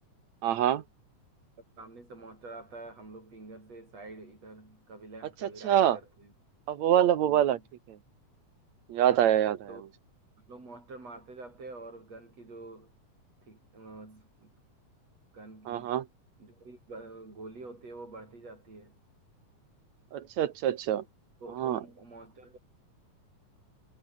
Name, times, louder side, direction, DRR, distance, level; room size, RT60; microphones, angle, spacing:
voice 1, 0.4-0.8 5.6-6.0 6.7-7.6 7.9-8.0 8.9-9.6 15.7-16.0 20.1-21.0 21.6-21.8, right 11 dB, 70° right, 2.3 m, -25 dB
voice 2, 1.8-6.3 7.2-7.7 9.0-9.3 9.7-9.8 10.5-12.9 13.5-14.5 15.3-16.0 16.4-19.0 21.4-22.6, right 3 dB, 50° right, 9.2 m, -47 dB
omnidirectional pair, 3.6 m